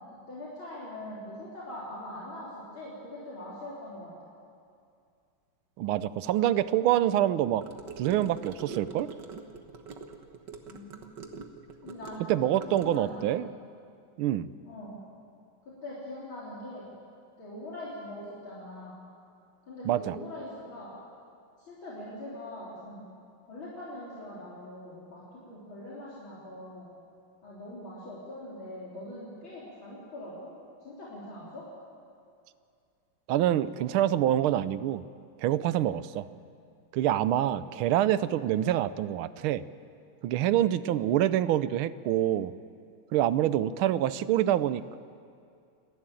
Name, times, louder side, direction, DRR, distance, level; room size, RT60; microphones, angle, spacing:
voice 1, 0.1-4.1 10.6-11.1 11.8-12.2 12.7-13.4 14.6-15.0 15.6-16.9 17.4-19.0 19.7-20.9 21.6-23.0 23.5-26.9 27.4-30.5 30.8-31.6, left 1 dB, 70° left, -8 dB, 4.3 m, -42 dB
voice 2, 5.8-7.6 8.0-9.1 12.3-13.5 14.2-14.5 19.9-20.2 33.3-35.0 35.4-36.3 36.9-39.6 40.2-42.5 43.1-45.0, right 12 dB, 85° right, 15 dB, 1.5 m, -26 dB
Gurgling / Car passing by / Sink (filling or washing), 7.6-13.3, right 4 dB, 60° right, 1.8 m, -44 dB
28.0 x 11.5 x 9.0 m, 2.4 s
omnidirectional pair, 2.3 m